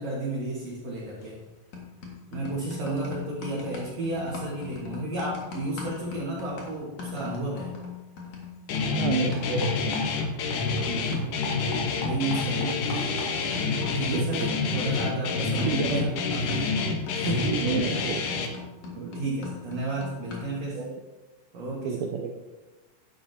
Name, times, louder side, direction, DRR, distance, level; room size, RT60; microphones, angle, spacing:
voice 1, 0.0-1.4 2.3-7.7 10.8-13.0 13.9-16.8 17.1-17.5 18.8-20.8 21.5-22.0, right 2 dB, 55° right, -5 dB, 2.1 m, -32 dB
sound 1, 1.2-1.5 1.7-10.9 11.1-20.6, left 5 dB, 50° left, 2.3 m, -40 dB
Guitar, 8.7-18.5, left 4 dB, 90° left, 1.7 m, -28 dB
voice 2, 8.9-9.9 14.1-14.5 15.7-16.2 17.3-18.2 18.9-19.2 20.7-21.0 21.8-22.3, right 6 dB, 85° right, 2 dB, 2.2 m, -31 dB
11.5 x 11.0 x 2.8 m, 1.2 s
omnidirectional pair, 5.0 m